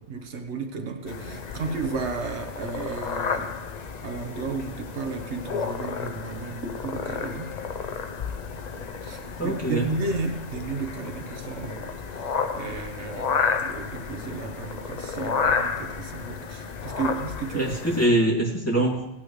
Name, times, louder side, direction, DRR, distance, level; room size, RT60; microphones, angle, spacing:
voice 1, 0.1-3.7 4.0-7.6 8.7-18.2, right 4 dB, 85° right, 6 dB, 1.3 m, -33 dB
sound 1, 1.1-18.1, left 5 dB, 45° left, 0.6 m, -32 dB
voice 2, 9.4-9.9 17.5-19.1, right 1 dB, 15° left, -3 dB, 2.4 m, -23 dB
18.0 x 9.0 x 3.1 m, 0.88 s
omnidirectional pair, 1.1 m